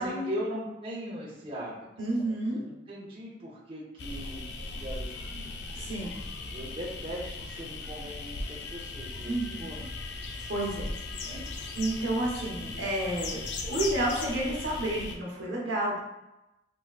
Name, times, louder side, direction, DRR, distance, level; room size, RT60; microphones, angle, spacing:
voice 1, 0.0-5.5 6.4-9.8 11.2-11.5, equal, 30° right, -6 dB, 0.6 m, -40 dB
voice 2, 2.0-2.6 5.7-6.2 9.2-9.7 10.5-10.9 11.2-11.3 11.8-16.0, right 1 dB, 75° right, -4 dB, 1.0 m, -30 dB
sound 1, 4.0-15.2, left 3 dB, 65° left, 0.4 m, -38 dB
3.4 x 2.9 x 2.3 m, 0.95 s
head